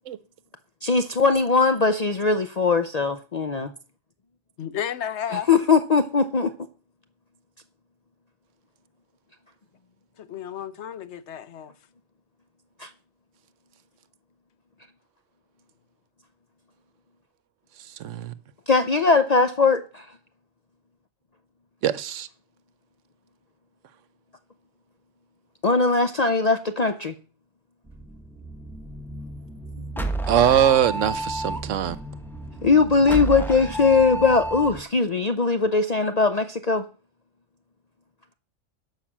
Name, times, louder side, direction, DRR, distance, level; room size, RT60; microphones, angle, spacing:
voice 1, 0.8-3.7 5.5-6.5 12.8-12.9 18.7-20.1 25.6-27.1 32.6-36.8, left 4 dB, 40° left, 0.7 m, -20 dB
voice 2, 4.6-5.5 10.2-11.7, left 9 dB, 70° left, 1.0 m, -32 dB
voice 3, 18.0-18.3 21.8-22.3 30.3-32.0, right 10 dB, 80° right, 1.1 m, -21 dB
sound 1, 27.9-34.8, right 1 dB, ahead, 1.0 m, -32 dB
11.5 x 5.7 x 7.3 m
omnidirectional pair, 1.3 m